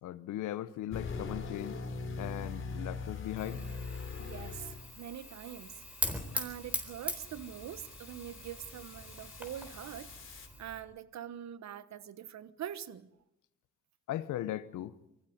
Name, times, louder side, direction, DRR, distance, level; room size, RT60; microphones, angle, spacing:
voice 1, 0.0-1.8 2.2-3.6 14.1-14.9, left 13 dB, 85° left, 1.1 m, -38 dB
sound 1, 0.9-10.5, left 4 dB, 40° left, 3.3 m, -43 dB
Fire, 3.4-10.8, equal, 5° right, 4.0 m, -41 dB
voice 2, 4.2-5.8 6.3-13.1, right 10 dB, 65° right, 1.3 m, -44 dB
24.0 x 15.5 x 9.5 m
cardioid pair, 90°, 30 cm